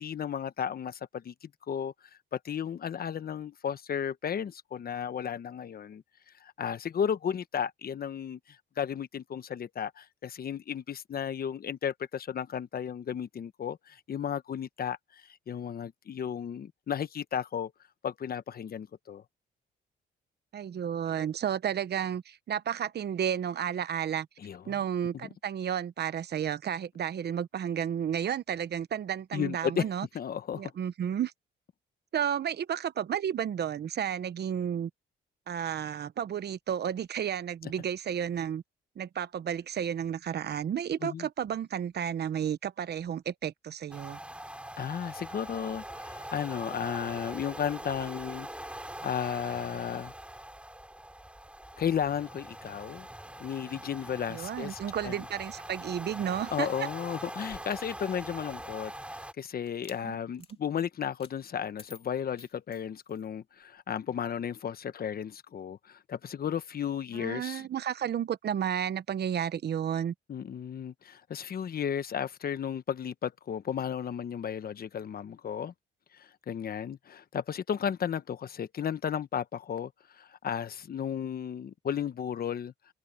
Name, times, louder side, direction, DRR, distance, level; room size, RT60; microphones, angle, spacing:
voice 1, 0.0-1.9 2.3-6.0 6.4-17.7 18.0-19.2 24.4-24.7 29.3-29.9 30.1-30.7 37.6-37.7 41.0-41.3 44.8-48.5 49.0-50.1 51.8-53.1 53.4-55.2 56.5-67.7 70.3-75.7 76.1-82.7, left 8 dB, 50° left, 1.1 m, -34 dB
voice 2, 20.5-24.3 24.7-30.1 30.5-31.3 32.1-34.9 35.5-38.6 39.0-44.2 54.3-56.7 60.1-60.2 67.1-70.1, right 9 dB, 55° right, 1.1 m, -32 dB
sound 1, 43.9-59.3, right 1 dB, 5° right, 3.6 m, -43 dB
sound 2, 57.3-58.9 59.7-60.0 60.4-60.6 61.2-61.4 61.8-63.3, left 4 dB, 30° left, 3.3 m, -53 dB
cardioid pair, 90°, 20 cm